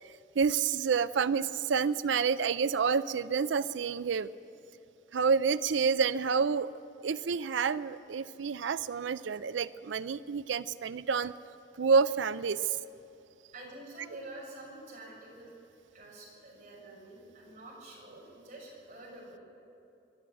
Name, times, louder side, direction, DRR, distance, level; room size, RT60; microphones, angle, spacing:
voice 1, 0.0-4.3 5.1-6.7 7.0-11.3 11.8-12.8, right 5 dB, 85° right, 15 dB, 0.5 m, -29 dB
voice 2, 13.5-15.5 15.9-19.4, right 1 dB, 40° right, -4 dB, 6.5 m, -48 dB
27.0 x 12.0 x 8.7 m, 2.7 s
head